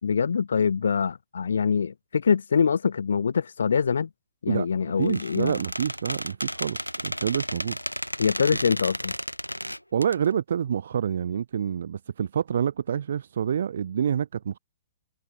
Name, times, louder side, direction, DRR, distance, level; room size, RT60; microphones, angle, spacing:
voice 1, 0.0-4.1 4.4-5.6 8.2-9.1, left 6 dB, 65° left, 2.3 m, -24 dB
voice 2, 4.5-7.8 9.9-14.6, right 8 dB, 55° right, 1.3 m, -27 dB
Squeak, 5.0-10.2, equal, 90° left, 3.9 m, -33 dB
figure-of-eight pair, 115°, 0 cm